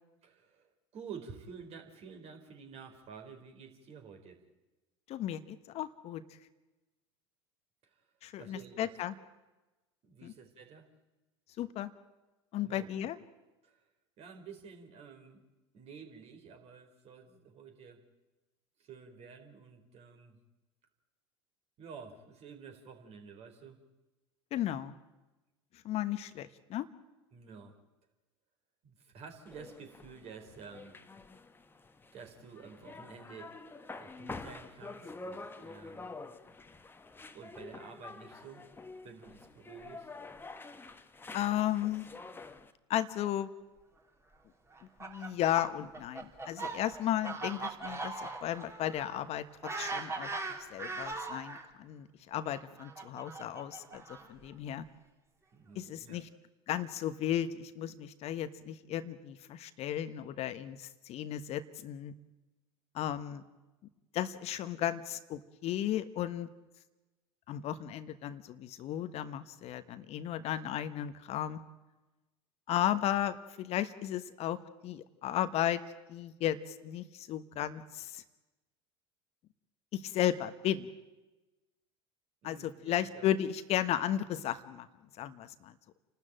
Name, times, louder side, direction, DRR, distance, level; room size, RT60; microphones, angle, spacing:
voice 1, 0.2-4.4 7.8-8.0 8.4-8.9 10.0-10.9 12.6-13.1 13.6-13.8 14.2-15.4 15.7-18.0 18.8-20.4 21.8-23.8 27.3-27.8 28.8-30.9 32.1-33.5 34.0-36.1 36.4-36.6 37.3-38.7 39.0-40.1 55.5-56.2 82.4-83.3, right 6 dB, 45° right, 5 dB, 4.3 m, -50 dB
voice 2, 5.1-6.2 8.2-9.1 10.2-10.3 11.6-11.9 12.5-13.2 24.5-24.9 25.8-26.9 41.3-42.1 42.9-43.5 45.0-49.4 49.8-50.3 50.7-54.9 55.7-56.3 56.7-62.1 62.9-63.4 64.1-66.5 67.5-71.6 72.7-75.8 76.1-78.2 79.9-80.9 82.4-84.9 85.2-85.7, left 11 dB, 45° left, 12 dB, 1.2 m, -34 dB
sound 1, 29.5-42.7, left 3 dB, 15° left, 1.4 m, -48 dB
Fowl, 44.7-51.6 52.4-54.5, right 3 dB, 20° right, 3.2 m, -40 dB
29.0 x 13.0 x 9.0 m, 1.1 s
hypercardioid pair, 75°, 14 cm